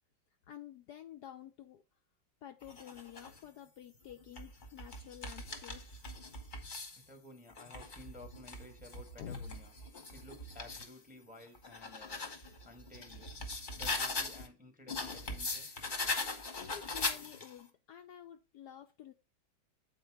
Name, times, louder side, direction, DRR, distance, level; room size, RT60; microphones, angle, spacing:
voice 1, 0.5-1.8 2.4-6.0 9.2-9.5 16.7-19.1, left 9 dB, 70° left, 1.0 m, -50 dB
sound 1, 2.6-3.4 4.1-7.0 7.5-10.9 11.4-14.5 14.9-17.6, left 3 dB, 30° left, 1.0 m, -40 dB
voice 2, 6.9-9.7 10.1-12.2 12.6-13.3 13.7-15.7, left 2 dB, 5° right, 0.9 m, -54 dB
7.8 x 4.5 x 4.6 m
omnidirectional pair, 2.2 m